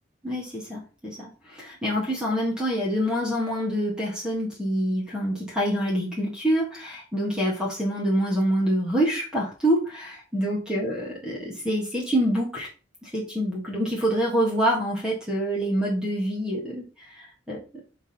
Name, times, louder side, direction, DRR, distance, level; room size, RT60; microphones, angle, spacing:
voice 1, 0.2-12.7 13.0-17.8, equal, 5° right, -4 dB, 1.6 m, -26 dB
4.8 x 3.9 x 5.4 m, 0.34 s
head